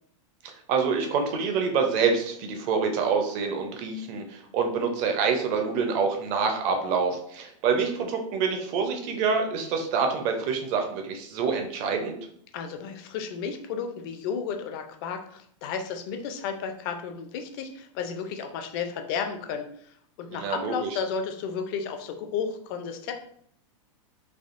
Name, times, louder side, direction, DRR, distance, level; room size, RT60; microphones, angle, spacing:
voice 1, 0.4-12.2 20.3-20.9, right 5 dB, 35° right, 4 dB, 0.5 m, -26 dB
voice 2, 12.5-23.1, left 6 dB, 40° left, 6 dB, 0.4 m, -33 dB
3.4 x 2.3 x 2.4 m, 0.65 s
supercardioid pair, 155°, 17 cm